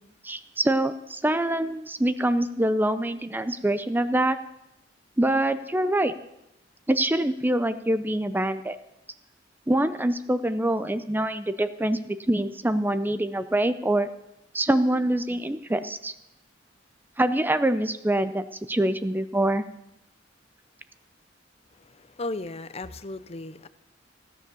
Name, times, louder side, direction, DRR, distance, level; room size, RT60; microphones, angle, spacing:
voice 1, 0.2-4.4 5.2-6.1 6.9-8.8 9.7-14.1 14.5-16.1 17.2-19.6, right 1 dB, 10° right, 12 dB, 0.5 m, -25 dB
voice 2, 21.8-23.7, left 2 dB, 35° left, 14 dB, 0.6 m, -36 dB
16.0 x 10.0 x 6.9 m, 0.86 s
head